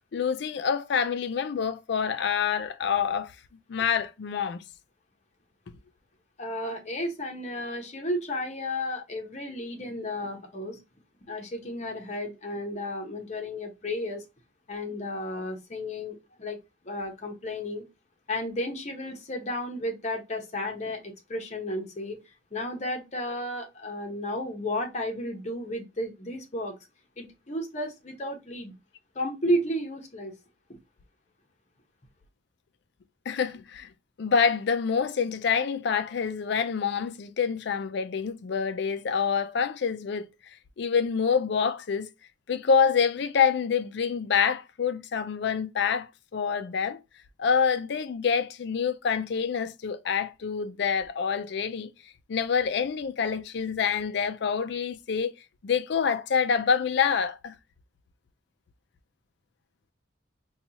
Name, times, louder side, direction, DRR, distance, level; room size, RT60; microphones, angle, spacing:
voice 1, 0.1-3.3 3.7-4.6 33.3-33.9 34.2-40.3 40.8-42.1 42.5-47.0 47.4-51.9 52.3-55.3 55.6-57.5, left 6 dB, 60° left, 0.4 m, -26 dB
voice 2, 6.4-10.8 11.3-14.2 14.7-17.8 18.3-22.2 22.5-26.7 27.2-28.7 29.1-30.3, left 1 dB, 35° left, 0.8 m, -33 dB
4.1 x 2.3 x 2.8 m
head